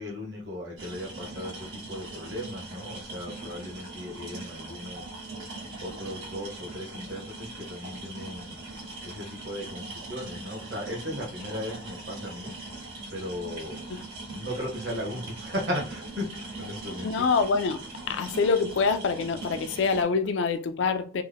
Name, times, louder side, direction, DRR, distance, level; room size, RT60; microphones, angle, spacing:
voice 1, 0.0-5.2 5.8-8.6 9.0-13.8 14.3-17.2, left 1 dB, 60° right, 1.0 m, -36 dB
sound 1, 0.8-20.0, right 2 dB, 85° right, 1.6 m, -41 dB
voice 2, 17.0-17.8 18.1-21.2, left 4 dB, 70° left, 0.4 m, -25 dB
3.3 x 2.1 x 3.4 m
head